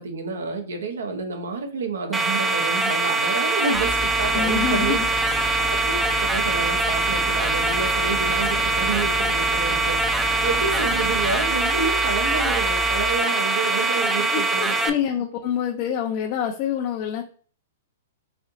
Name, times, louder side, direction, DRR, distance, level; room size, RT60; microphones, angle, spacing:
voice 1, 0.0-5.0 5.5-10.0 10.4-15.0, right 4 dB, 75° right, 6 dB, 0.8 m, -29 dB
sound 1, 2.1-14.9, right 3 dB, 10° right, 0.5 m, -23 dB
Tools, 3.7-13.2, equal, 20° left, 0.8 m, -34 dB
voice 2, 4.3-5.5 14.3-17.2, left 9 dB, 45° left, 2 dB, 0.5 m, -27 dB
4.2 x 2.7 x 2.6 m, 0.43 s
hypercardioid pair, 120°, 0 cm